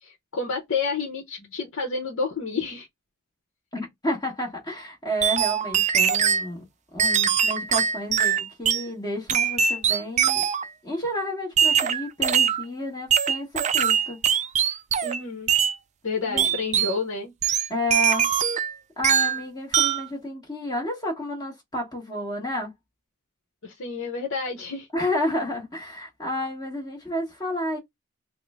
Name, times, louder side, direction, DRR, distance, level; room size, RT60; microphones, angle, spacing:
voice 1, 0.0-2.9 15.0-15.5 16.0-17.3 23.6-24.9, left 4 dB, 65° left, 0.9 m, -30 dB
voice 2, 3.7-6.6 6.9-10.5 10.8-14.2 16.2-16.5 17.7-18.3 19.0-22.7 24.9-27.8, left 1 dB, 20° left, 1.2 m, -31 dB
sound 1, 5.2-6.5 7.0-8.9 9.3-10.7 11.6-12.6 13.1-15.2 15.5-15.8 16.4-17.0 17.4-18.7 19.0-19.4 19.7-20.1, right 8 dB, 35° right, 0.4 m, -22 dB
3.7 x 2.1 x 3.5 m
head